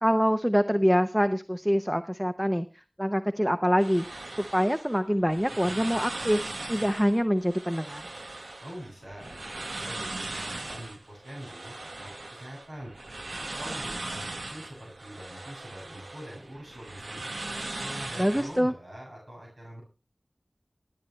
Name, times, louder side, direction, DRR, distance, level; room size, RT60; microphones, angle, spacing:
voice 1, 0.0-2.7 3.0-6.4 6.7-8.0 18.2-18.7, equal, 5° right, 9 dB, 0.8 m, -25 dB
sound 1, 3.8-18.6, right 2 dB, 90° right, 1.4 m, -39 dB
voice 2, 8.6-12.9 13.3-17.2 17.5-19.8, equal, 65° right, -3 dB, 7.5 m, -44 dB
26.0 x 9.1 x 3.2 m, 0.31 s
wide cardioid pair, 50°, 0 cm